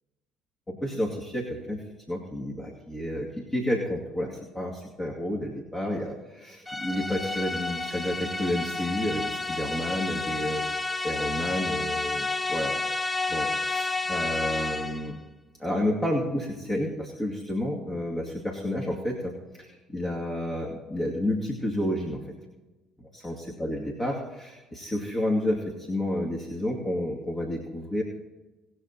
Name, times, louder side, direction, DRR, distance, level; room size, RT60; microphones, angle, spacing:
voice 1, 0.7-10.6 11.0-12.7 13.3-15.2 15.6-22.2 23.0-28.0, left 1 dB, 25° left, -2 dB, 2.4 m, -30 dB
sound 1, 6.7-15.1, left 3 dB, 5° left, 0.8 m, -30 dB
19.5 x 6.6 x 4.3 m, 1.1 s
figure-of-eight pair, 55°, 0 cm